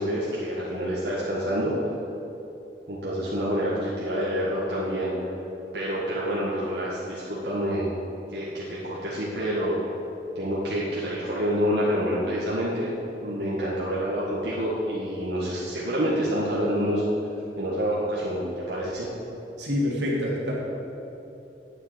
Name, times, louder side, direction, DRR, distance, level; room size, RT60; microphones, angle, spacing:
voice 1, 0.0-1.7 2.9-5.1 5.7-7.9 8.3-9.7 10.4-12.9 13.2-17.0 17.6-19.1, equal, 70° right, -7 dB, 1.8 m, -27 dB
voice 2, 19.6-20.5, left 1 dB, 85° right, -3 dB, 2.7 m, -26 dB
8.9 x 7.4 x 8.7 m, 3.0 s
head